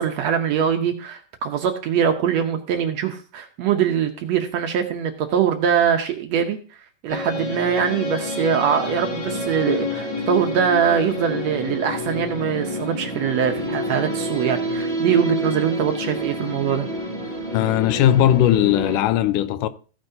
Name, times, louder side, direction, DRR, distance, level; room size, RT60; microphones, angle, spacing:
voice 1, 0.0-6.6 7.0-16.9, right 8 dB, 70° right, 1.7 m, -22 dB
sound 1, 7.1-19.0, left 1 dB, 10° left, 2.9 m, -28 dB
voice 2, 17.5-19.7, left 12 dB, 85° left, 2.1 m, -18 dB
15.0 x 9.2 x 2.7 m
omnidirectional pair, 3.7 m